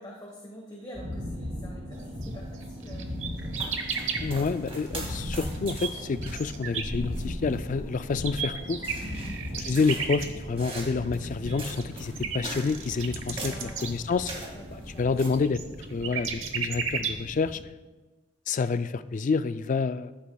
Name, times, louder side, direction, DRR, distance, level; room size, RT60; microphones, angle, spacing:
voice 1, 0.0-3.7 9.0-9.5 13.4-13.9 14.5-15.2, equal, 20° left, -2 dB, 1.2 m, -46 dB
sound 1, 0.9-17.5, left 1 dB, 45° right, 3.5 m, -38 dB
sound 2, 2.2-2.3 2.5-4.2 4.9-5.0 5.3-7.6 7.9-17.6, right 7 dB, 70° right, 1.0 m, -34 dB
sound 3, 3.5-15.3, right 1 dB, 30° right, 2.0 m, -41 dB
voice 2, 4.2-8.8 9.7-14.3 15.0-15.6 15.9-17.6 18.5-20.1, left 4 dB, 40° left, 13 dB, 0.3 m, -28 dB
14.5 x 11.5 x 2.3 m, 1.2 s
head